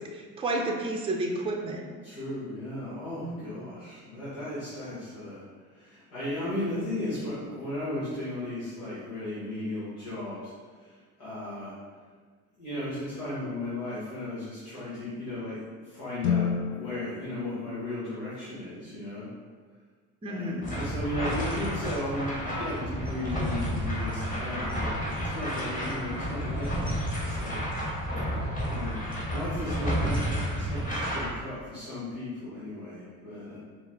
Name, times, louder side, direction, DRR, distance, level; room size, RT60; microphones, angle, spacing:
voice 1, 0.1-1.9 3.2-3.6 20.2-20.7, right 1 dB, 15° right, 1 dB, 0.5 m, -31 dB
voice 2, 2.0-5.4 5.7-10.5 10.8-11.7 12.6-15.6 15.8-19.3 20.2-27.6 28.6-29.1 29.3-33.6, left 1 dB, 80° left, -11 dB, 1.5 m, -35 dB
sound 1, 16.2-18.6, left 7 dB, 45° left, 0.5 m, -32 dB
sound 2, 20.6-31.3, equal, 20° left, 1.4 m, -31 dB
4.6 x 2.4 x 3.5 m, 1.5 s
figure-of-eight pair, 55°, 43 cm